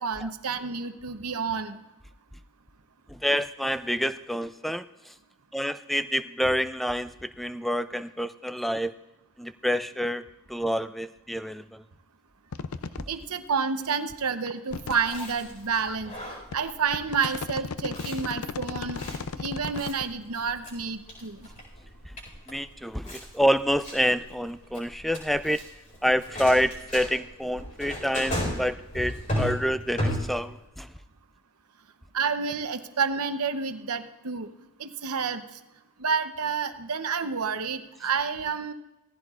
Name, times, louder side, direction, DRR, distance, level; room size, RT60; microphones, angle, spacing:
voice 1, 0.0-1.8 13.1-16.1 16.5-19.0 19.4-21.5 32.1-34.5 34.8-35.4 36.0-38.7, right 5 dB, 85° right, 8 dB, 0.9 m, -29 dB
voice 2, 3.1-5.1 5.5-8.9 9.4-11.8 22.5-25.6 26.0-30.9, equal, ahead, 12 dB, 0.3 m, -27 dB
sound 1, 12.5-13.0 13.6-13.7 14.5-15.1 15.9-16.0 16.5-20.0, left 5 dB, 75° left, 0.5 m, -35 dB
Chewing mastication, 14.7-30.6, equal, 35° left, 4.4 m, -36 dB
17.5 x 14.5 x 2.5 m, 1.0 s
head